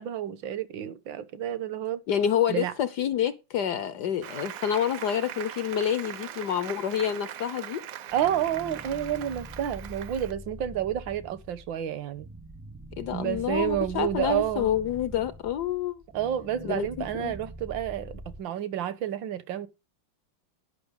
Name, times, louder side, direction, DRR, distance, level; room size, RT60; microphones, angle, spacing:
voice 1, 0.0-2.0 2.5-2.7 8.1-12.3 13.1-14.7 16.1-19.7, right 10 dB, 75° right, 1.7 m, -30 dB
voice 2, 2.1-7.8 13.0-16.0 16.6-16.9 17.2-17.4, left 9 dB, 65° left, 1.3 m, -28 dB
Applause, 4.2-10.3, right 10 dB, 60° right, 0.9 m, -41 dB
sound 1, 8.1-18.4, right 1 dB, 15° right, 0.4 m, -44 dB
11.0 x 5.8 x 6.4 m
omnidirectional pair, 2.1 m